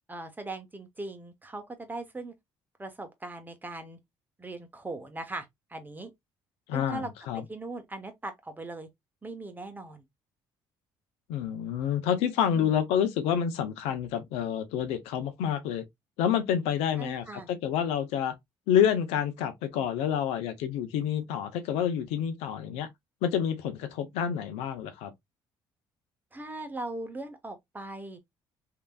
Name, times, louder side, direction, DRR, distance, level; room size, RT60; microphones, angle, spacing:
voice 1, 0.1-2.3 2.8-4.0 4.4-6.1 6.7-7.1 7.5-8.9 9.2-10.0 12.5-12.8 17.0-17.5 26.3-28.2, right 2 dB, 15° right, 1.0 m, -39 dB
voice 2, 6.7-7.4 11.3-15.8 16.2-18.3 18.7-22.9 23.2-25.1, left 9 dB, 80° left, 0.6 m, -28 dB
3.3 x 2.8 x 2.3 m
supercardioid pair, 70°, 10 cm